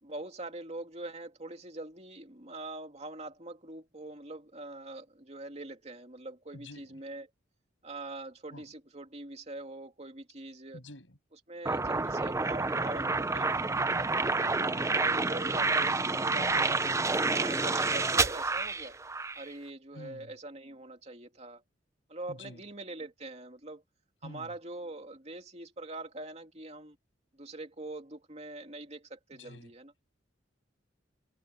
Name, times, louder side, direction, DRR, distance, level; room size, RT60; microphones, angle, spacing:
voice 1, 0.0-7.3 7.8-10.8 11.5-14.0 14.4-16.8 17.3-19.0 19.3-21.6 22.1-23.8 24.2-27.0 27.3-29.9, right 2 dB, 35° right, 2.8 m, -43 dB
voice 2, 6.5-7.0 8.5-8.7 10.7-11.2 12.1-12.2 16.7-17.1 17.5-17.8 19.9-20.3 22.3-22.7 24.2-24.5 29.3-29.7, left 1 dB, 90° left, 7.5 m, -48 dB
sound 1, 11.7-19.5, right 3 dB, 15° right, 0.5 m, -29 dB
head